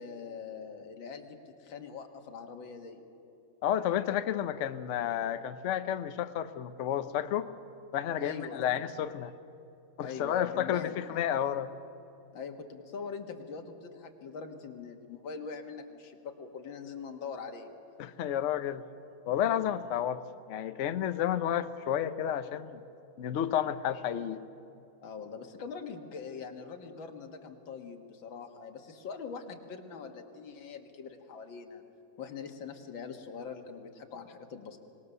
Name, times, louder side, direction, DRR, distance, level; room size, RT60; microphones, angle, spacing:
voice 1, 0.0-3.0 8.2-8.8 10.0-11.1 12.3-17.7 25.0-31.8 32.2-34.8, left 5 dB, 80° left, 4 dB, 2.2 m, -43 dB
voice 2, 3.6-7.5 7.9-9.3 10.0-11.7 18.0-18.8 19.3-20.2 20.5-22.8 23.2-24.4, left 10 dB, 55° left, 11 dB, 0.8 m, -31 dB
25.5 x 20.0 x 6.8 m, 2.7 s
omnidirectional pair, 2.1 m